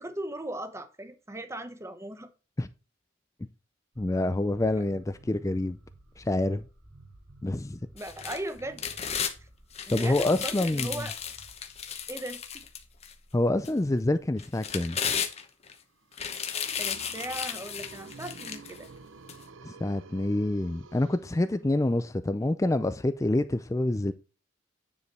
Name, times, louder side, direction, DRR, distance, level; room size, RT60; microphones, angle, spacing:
voice 1, 0.0-2.3 7.9-8.8 9.9-11.2 12.1-12.4 16.7-18.9, right 1 dB, 15° right, 0.9 m, -38 dB
sound 1, 3.9-14.8, right 1 dB, 90° right, 3.2 m, -55 dB
voice 2, 4.0-5.8 6.2-6.6 7.4-7.8 9.9-10.9 13.3-15.0 19.6-24.1, left 1 dB, 15° left, 0.4 m, -27 dB
sound 2, 8.0-9.3 9.7-13.1 13.6-13.7 14.4-15.7 16.1-18.8 19.3-19.4, left 7 dB, 30° left, 0.9 m, -34 dB
sound 3, 16.0-21.9, right 4 dB, 70° right, 0.7 m, -50 dB
9.6 x 4.9 x 4.2 m
head